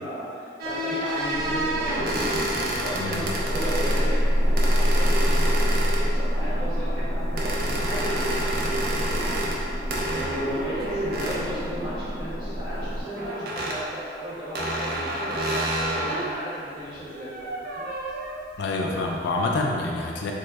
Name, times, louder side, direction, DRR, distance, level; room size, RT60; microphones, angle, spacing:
voice 1, 0.0-2.3 2.8-9.3 10.1-17.8 18.1-18.2, equal, 25° right, -10 dB, 1.0 m, -35 dB
sound 1, 0.6-4.1 4.6-6.2 7.4-9.6 9.9-11.4 13.1-13.8 14.5-16.3 16.9-18.4, right 1 dB, 55° right, 0.5 m, -29 dB
sound 2, 1.3-13.0, equal, 70° right, 1.4 m, -26 dB
voice 2, 18.6-20.3, left 2 dB, 60° left, 0 dB, 0.3 m, -27 dB
3.5 x 2.1 x 3.3 m, 2.3 s
head